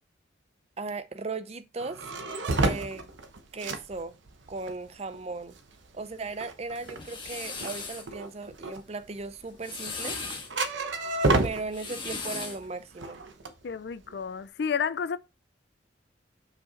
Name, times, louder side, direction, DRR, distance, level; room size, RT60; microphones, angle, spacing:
voice 1, 0.8-2.1 2.5-3.0 3.5-4.2 4.5-5.6 5.9-10.2 11.4-13.2, right 3 dB, 30° right, 0.5 m, -37 dB
sound 1, 1.8-12.4 12.6-14.3, right 2 dB, 70° right, 0.9 m, -31 dB
sound 2, 6.7-8.1 9.4-10.5 11.6-12.7, left 4 dB, 25° left, 1.3 m, -37 dB
voice 2, 13.6-15.2, left 6 dB, 60° left, 0.4 m, -31 dB
5.6 x 4.8 x 4.1 m
head